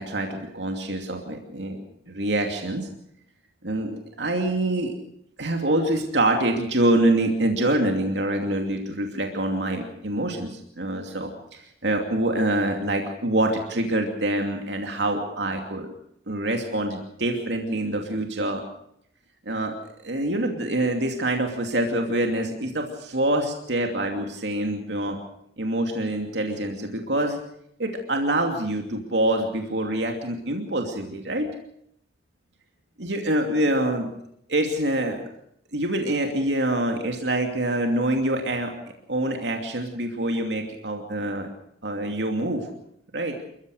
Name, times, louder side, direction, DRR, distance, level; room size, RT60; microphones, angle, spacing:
voice 1, 0.0-1.8 2.1-2.9 3.6-4.9 5.4-15.9 16.3-18.6 19.5-19.8 20.0-25.2 25.6-27.4 27.8-31.5 33.0-34.1 34.5-35.2 35.7-38.7 39.1-41.5 41.8-42.7 43.1-43.4, right 1 dB, 85° right, 3 dB, 2.7 m, -25 dB
28.5 x 15.0 x 6.5 m, 0.73 s
head